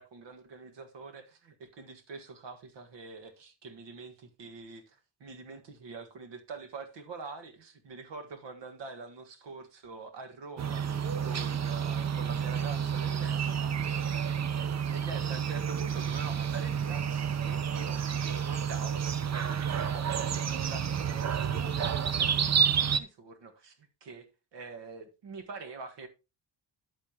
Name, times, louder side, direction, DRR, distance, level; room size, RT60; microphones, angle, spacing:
voice 1, 0.0-14.1 14.9-24.3 24.5-26.1, right 4 dB, 75° right, 1.7 m, -45 dB
sound 1, 10.6-23.0, right 7 dB, 40° right, 0.7 m, -30 dB
10.0 x 8.5 x 2.9 m
cardioid pair, 85°, 43 cm